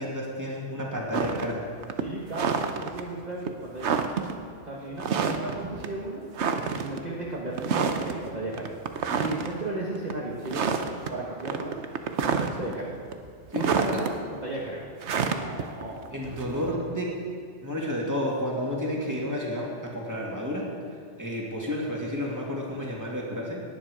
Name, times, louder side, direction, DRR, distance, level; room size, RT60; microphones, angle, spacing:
voice 1, 0.0-1.6 12.7-12.8 13.5-14.0 16.1-17.1 17.6-20.7 21.2-23.6, left 1 dB, 15° right, -3 dB, 2.4 m, -31 dB
sound 1, 1.1-1.5 1.8-3.0 3.5-3.6 3.8-4.3 5.0-5.6 5.8-5.9 6.4-7.0 7.6-8.1 8.5-9.5 10.0-10.1 10.5-11.1 11.4-12.7 13.1-14.1 15.0-16.7, right 6 dB, 70° right, 1.1 m, -28 dB
voice 2, 2.0-4.0 4.6-6.2 6.5-8.8 9.2-11.7 12.2-13.0 13.5-14.2 14.4-14.9 15.2-15.9 16.2-16.3, right 2 dB, 35° right, -5 dB, 1.6 m, -35 dB
18.0 x 10.0 x 5.0 m, 2.3 s
omnidirectional pair, 1.2 m